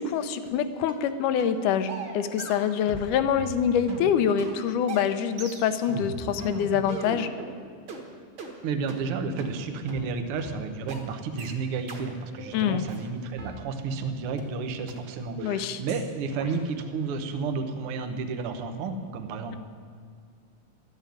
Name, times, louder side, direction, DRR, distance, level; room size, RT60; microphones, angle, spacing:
voice 1, 0.0-7.3 12.5-12.9 15.4-15.8, left 8 dB, 80° left, 11 dB, 2.0 m, -25 dB
sound 1, 0.9-1.1 1.4-1.6 1.9-3.1 3.4-7.5 7.9-8.0 8.4-8.5 8.9-9.0 9.4-9.5 9.9-10.0 10.4-10.5 10.9-11.0 11.4-11.5 11.9-12.0 12.4-12.5 12.9-14.0 14.4-14.5 14.9-15.0 15.4-15.5 15.9-16.0 16.4-16.5, right 2 dB, 40° right, 1.8 m, -38 dB
voice 2, 8.6-19.6, right 4 dB, 65° right, 7 dB, 1.4 m, -31 dB
13.0 x 9.0 x 9.3 m, 2.2 s
omnidirectional pair, 4.0 m